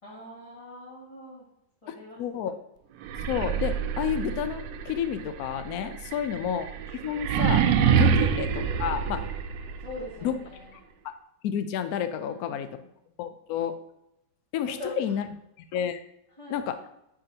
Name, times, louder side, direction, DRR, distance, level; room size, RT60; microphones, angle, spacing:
voice 1, 0.0-1.5 1.8-2.5 6.0-6.2 9.8-10.7 12.2-12.9 14.7-15.2 16.4-16.6, left 1 dB, 15° left, -9 dB, 1.8 m, -42 dB
voice 2, 1.9-2.5 3.3-6.7 7.0-9.2 10.2-10.3 11.4-12.7 13.2-13.7 14.5-15.2 15.7-16.0 16.5-16.8, left 9 dB, 75° left, 10 dB, 0.8 m, -30 dB
sound 1, 3.0-9.9, right 7 dB, 75° right, 1.2 m, -26 dB
8.5 x 5.1 x 2.8 m, 0.82 s
omnidirectional pair, 2.2 m